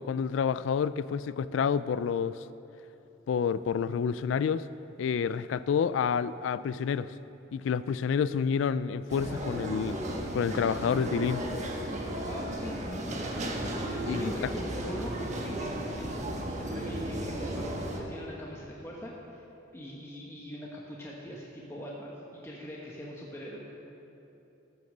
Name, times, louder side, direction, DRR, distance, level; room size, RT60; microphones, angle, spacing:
voice 1, 0.0-2.4 3.3-4.7 5.0-7.1 7.5-10.0 10.3-11.4 14.1-14.3, left 6 dB, 85° left, 16 dB, 0.3 m, -29 dB
sound 1, 9.1-18.0, right 1 dB, 40° right, 1.3 m, -34 dB
voice 2, 12.3-13.1 13.9-19.5 19.7-23.6, equal, 15° left, -4 dB, 1.1 m, -42 dB
14.0 x 6.6 x 6.6 m, 2.8 s
head